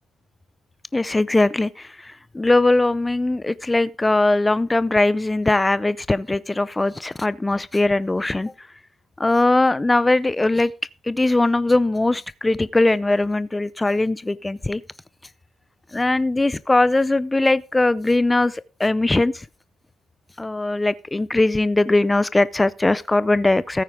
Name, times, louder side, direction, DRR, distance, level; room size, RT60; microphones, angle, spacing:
voice 1, 0.9-8.5 9.2-10.7 11.1-14.8 15.9-19.4 20.4-23.8, left 2 dB, 15° left, 0.5 m, -20 dB
14.5 x 8.8 x 3.6 m
cardioid pair, 90°, 0 cm